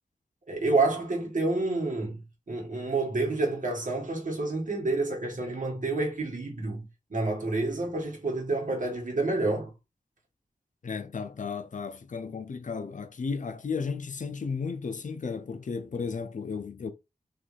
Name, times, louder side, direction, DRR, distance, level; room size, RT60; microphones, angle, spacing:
voice 1, 0.5-2.2 2.5-6.8 7.1-9.7, right 3 dB, 65° right, 1.9 m, -28 dB
voice 2, 10.8-16.9, left 5 dB, 65° left, 0.5 m, -34 dB
3.9 x 3.3 x 3.4 m
wide cardioid pair, 55°, 14 cm